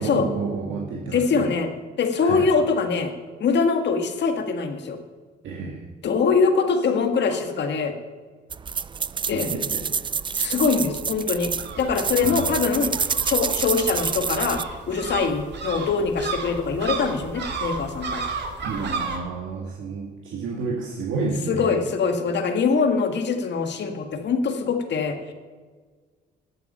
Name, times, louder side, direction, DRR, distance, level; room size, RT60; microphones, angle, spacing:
voice 1, 0.0-1.5 2.2-2.5 5.4-5.8 7.3-7.4 9.3-9.8 12.2-12.5 18.6-21.8, right 4 dB, 75° right, -1 dB, 1.8 m, -30 dB
voice 2, 1.1-1.7 2.0-3.1 3.4-5.0 6.0-7.9 9.3-9.5 10.3-11.5 11.8-12.9 13.2-14.6 14.9-18.2 21.5-25.3, left 5 dB, 60° left, 6 dB, 1.7 m, -23 dB
sound 1, 8.5-14.6, right 6 dB, 25° right, 0.3 m, -27 dB
sound 2, 11.4-19.2, right 4 dB, 60° right, 2.4 m, -33 dB
13.0 x 8.4 x 5.5 m, 1.5 s
cardioid pair, 90°, 20 cm